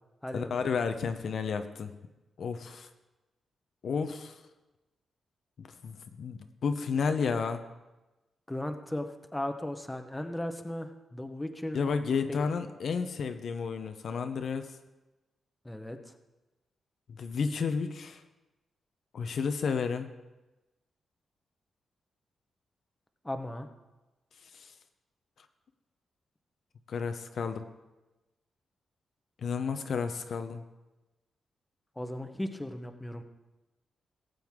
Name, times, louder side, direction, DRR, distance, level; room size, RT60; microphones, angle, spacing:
voice 1, 0.3-1.9 2.4-2.9 3.8-4.4 5.6-7.7 11.7-14.7 17.1-18.2 19.1-20.1 24.5-24.7 26.9-27.7 29.4-30.6, left 5 dB, 60° left, 8 dB, 0.7 m, -32 dB
voice 2, 8.5-11.8 12.3-12.4 15.6-16.0 23.2-23.7 32.0-33.2, left 1 dB, 10° left, 6 dB, 0.8 m, -36 dB
17.5 x 7.8 x 3.6 m, 1.1 s
cardioid pair, 115°, 0 cm